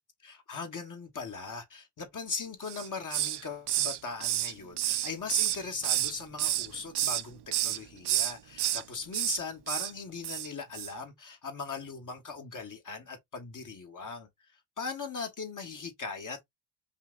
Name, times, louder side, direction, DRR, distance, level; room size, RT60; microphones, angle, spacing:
voice 1, 0.2-14.3 14.8-16.4, left 4 dB, 40° left, 1.2 m, -39 dB
Hiss, 2.6-3.4 3.7-6.1 6.4-7.2 7.5-7.8 8.0-8.8 9.1-9.4 9.7-9.9 10.2-10.5 10.7-10.9, right 13 dB, 55° right, 0.7 m, -29 dB
5.7 x 2.1 x 3.7 m
cardioid pair, 95°, 50 cm